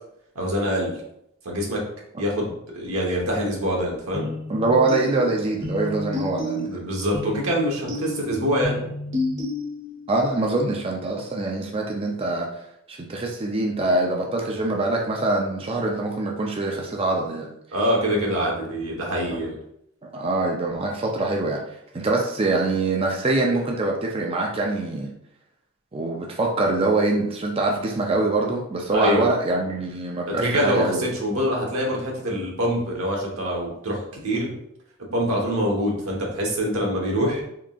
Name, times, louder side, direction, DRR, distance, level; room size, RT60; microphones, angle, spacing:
voice 1, 0.3-0.9 1.4-1.8 2.2-4.3 6.7-8.8 17.7-19.6 28.9-29.2 30.3-34.5 35.1-37.4, equal, 90° right, -2 dB, 1.1 m, -25 dB
sound 1, 4.1-10.1, left 2 dB, 60° right, 1.2 m, -31 dB
voice 2, 4.5-6.8 10.1-12.5 12.9-17.5 20.0-21.6 21.9-25.1 25.9-31.0, right 2 dB, 25° right, -1 dB, 0.4 m, -24 dB
3.7 x 3.6 x 2.4 m, 0.76 s
head